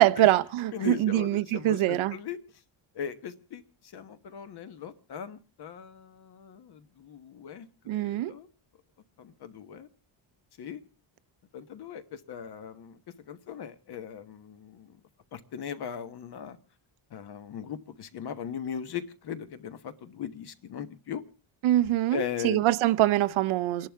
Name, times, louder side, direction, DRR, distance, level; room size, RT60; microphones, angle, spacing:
voice 1, 0.0-2.1 7.9-8.3 21.6-23.9, right 15 dB, 75° right, 0.8 m, -24 dB
voice 2, 0.7-2.4 2.9-8.5 9.2-9.9 10.6-10.8 11.5-13.0 13.3-15.0 15.3-16.6 17.1-21.2 22.1-22.7 23.8-23.9, left 8 dB, 50° left, 1.3 m, -39 dB
29.5 x 11.0 x 3.5 m
cardioid pair, 175°, 49 cm